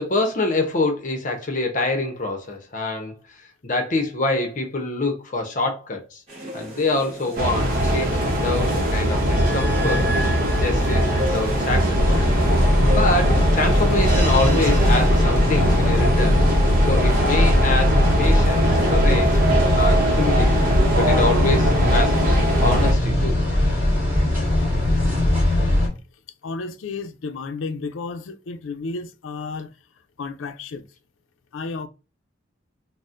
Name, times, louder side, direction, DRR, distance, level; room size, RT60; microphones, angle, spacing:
voice 1, 0.0-3.1 3.6-6.2 6.5-10.0 10.5-12.2 12.8-16.4 16.9-19.4 19.7-20.7 20.9-22.2 22.6-23.4, left 2 dB, 40° left, 0.7 m, -25 dB
sound 1, 6.3-15.1, left 1 dB, 30° right, 1.1 m, -36 dB
sound 2, 7.4-22.9, right 1 dB, 45° right, 0.7 m, -21 dB
sound 3, 12.0-25.9, left 1 dB, 10° right, 1.4 m, -20 dB
voice 2, 26.4-29.7 30.2-30.8 31.5-31.9, left 4 dB, 90° left, 0.4 m, -32 dB
4.1 x 2.1 x 2.4 m
head